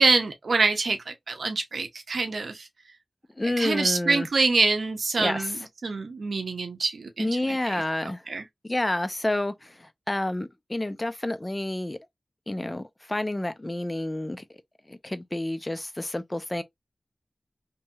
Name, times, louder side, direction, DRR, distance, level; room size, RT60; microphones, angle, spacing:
voice 1, 0.0-2.7 3.6-7.8 8.3-8.4, right 3 dB, 85° right, 0.6 m, -25 dB
voice 2, 3.4-4.3 5.2-5.5 7.2-8.2 8.6-12.0 12.5-14.4 14.9-16.6, left 1 dB, 20° left, 0.4 m, -29 dB
3.0 x 2.7 x 2.2 m
wide cardioid pair, 90°, 0 cm